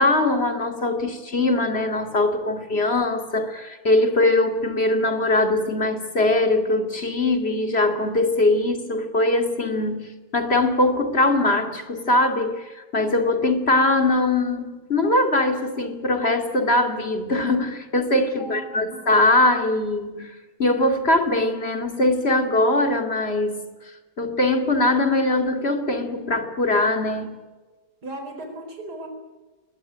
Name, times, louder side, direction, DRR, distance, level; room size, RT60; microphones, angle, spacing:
voice 1, 0.0-23.7 24.2-27.5, left 2 dB, 35° left, 6 dB, 2.7 m, -21 dB
voice 2, 18.4-19.1 28.0-29.1, right 1 dB, 70° right, 4 dB, 5.0 m, -36 dB
22.0 x 19.0 x 9.2 m, 1.2 s
omnidirectional pair, 1.8 m